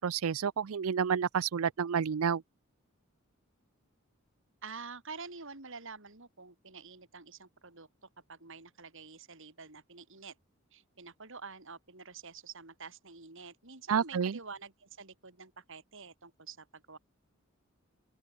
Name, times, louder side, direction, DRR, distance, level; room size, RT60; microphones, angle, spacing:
voice 1, 0.0-2.4 13.9-14.4, right 7 dB, 80° right, 0.5 m, -30 dB
voice 2, 4.6-10.3 10.7-17.0, right 4 dB, 65° right, 4.2 m, -48 dB
open air
head